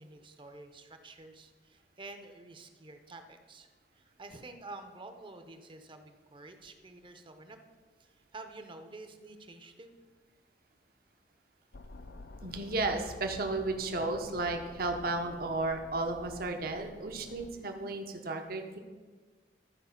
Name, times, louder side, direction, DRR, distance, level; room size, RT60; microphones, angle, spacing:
voice 1, 0.0-3.7 4.0-7.6 8.0-9.9, right 2 dB, 30° right, 7 dB, 0.8 m, -49 dB
sound 1, 11.7-17.5, left 2 dB, 70° left, 0.6 m, -50 dB
voice 2, 12.4-18.8, right 2 dB, 60° right, 4 dB, 0.9 m, -33 dB
13.0 x 4.7 x 5.8 m, 1.4 s
head